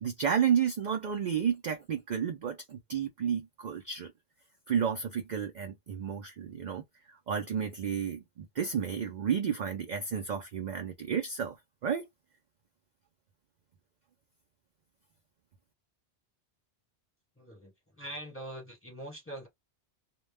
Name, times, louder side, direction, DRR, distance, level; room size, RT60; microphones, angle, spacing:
voice 1, 0.0-4.1 4.7-6.8 7.3-11.6 11.8-12.1, right 7 dB, 55° right, 0.5 m, -31 dB
voice 2, 17.4-19.5, right 1 dB, 10° left, 1.1 m, -43 dB
2.2 x 2.1 x 3.3 m
omnidirectional pair, 1.1 m